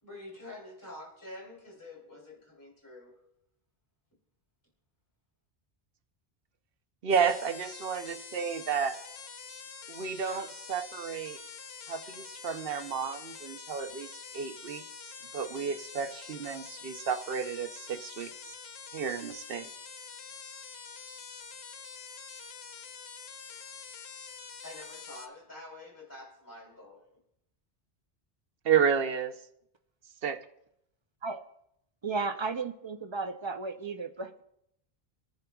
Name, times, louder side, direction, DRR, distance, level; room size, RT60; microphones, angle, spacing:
voice 1, 0.0-3.2 24.6-27.2, left 2 dB, 20° left, -2 dB, 3.1 m, -47 dB
voice 2, 7.0-9.0 9.9-11.4 11.9-14.8 15.3-18.5 18.9-19.7 28.6-29.3 30.2-30.4, right 7 dB, 65° right, 8 dB, 0.9 m, -31 dB
sound 1, 7.1-25.3, left 6 dB, 85° left, 1.1 m, -46 dB
voice 3, 32.0-34.4, right 4 dB, 35° right, 7 dB, 0.6 m, -34 dB
26.5 x 10.5 x 2.3 m, 0.77 s
omnidirectional pair, 1.0 m